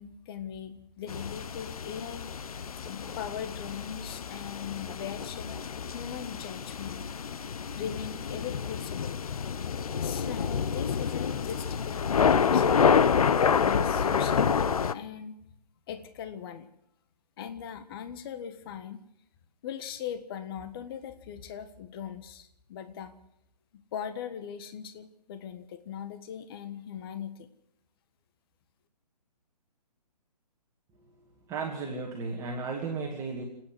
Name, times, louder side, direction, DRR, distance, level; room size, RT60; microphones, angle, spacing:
voice 1, 0.0-2.3 2.9-5.6 5.9-7.0 7.7-9.2 10.0-12.8 13.3-15.3 15.9-16.7 17.4-19.0 19.6-23.2 23.7-27.5, left 8 dB, 35° left, 10 dB, 1.6 m, -40 dB
sound 1, 1.1-14.9, left 6 dB, 60° left, 0.9 m, -28 dB
voice 2, 31.5-33.4, right 4 dB, 15° right, -2 dB, 2.5 m, -34 dB
29.0 x 9.8 x 9.6 m, 0.79 s
figure-of-eight pair, 140°, 21 cm